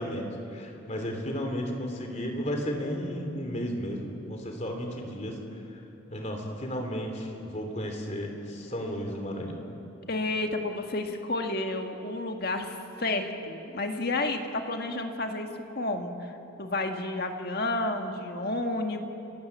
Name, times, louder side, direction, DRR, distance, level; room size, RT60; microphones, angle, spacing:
voice 1, 0.0-5.8 6.1-9.7, equal, 35° left, 3 dB, 3.0 m, -34 dB
voice 2, 10.1-16.3 16.6-19.0, left 2 dB, 50° left, 4 dB, 1.8 m, -31 dB
30.0 x 15.5 x 8.3 m, 2.9 s
head